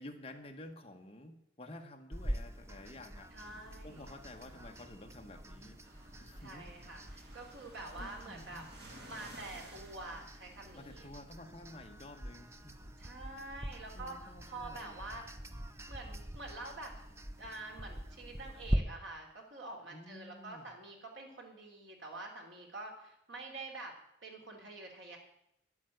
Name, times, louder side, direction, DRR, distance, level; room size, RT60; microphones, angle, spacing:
voice 1, 0.0-5.8 6.2-6.7 8.0-8.7 10.7-12.9 13.9-15.0 19.9-20.7, left 1 dB, 30° left, 4 dB, 1.2 m, -51 dB
sound 1, 2.1-18.8, equal, 15° right, 0.6 m, -43 dB
voice 2, 3.3-4.1 6.4-8.6 9.1-11.1 13.0-15.2 15.9-17.0 17.4-23.9 24.2-25.2, right 2 dB, 85° right, 1 dB, 3.2 m, -47 dB
sound 2, 3.4-11.1, right 1 dB, 60° right, 2.3 m, -57 dB
10.5 x 8.5 x 8.0 m, 0.79 s
head